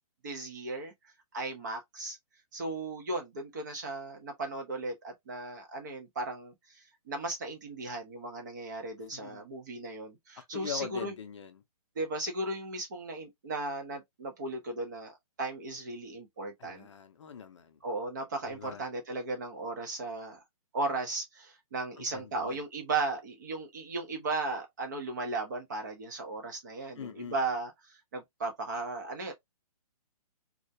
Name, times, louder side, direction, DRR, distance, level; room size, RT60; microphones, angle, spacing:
voice 1, 0.2-0.9 1.3-2.2 2.5-11.1 12.0-16.9 17.8-20.4 20.7-29.3, right 2 dB, 30° right, 0.6 m, -36 dB
voice 2, 9.1-9.5 10.5-11.6 16.6-17.8 18.4-18.8 22.0-22.6 27.0-27.4, left 7 dB, 50° left, 0.5 m, -42 dB
2.3 x 2.1 x 2.6 m
hypercardioid pair, 175°, 20 cm